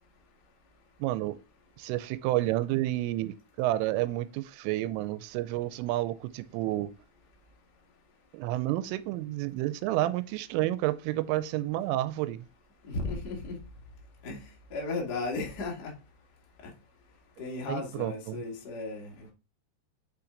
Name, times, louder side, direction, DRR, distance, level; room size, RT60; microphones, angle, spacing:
voice 1, 1.0-1.4 1.8-6.9 8.3-12.5 17.7-18.4, right 16 dB, 85° right, 3.1 m, -30 dB
voice 2, 12.8-13.6 14.2-14.4 14.7-15.9 16.6-16.7 17.4-19.3, left 3 dB, 80° left, 0.9 m, -35 dB
6.7 x 5.8 x 3.9 m
omnidirectional pair, 5.6 m